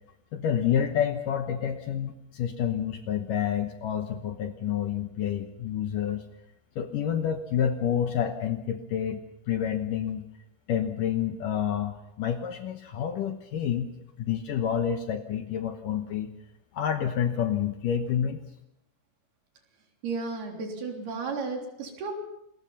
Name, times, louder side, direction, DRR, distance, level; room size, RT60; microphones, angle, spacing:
voice 1, 0.3-6.2 6.8-9.2 9.5-10.3 10.7-13.9 14.2-16.3 16.7-18.4, left 9 dB, 70° left, 7 dB, 2.3 m, -28 dB
voice 2, 20.0-22.1, right 4 dB, 70° right, 2 dB, 5.3 m, -33 dB
28.0 x 21.5 x 5.6 m, 0.81 s
omnidirectional pair, 4.8 m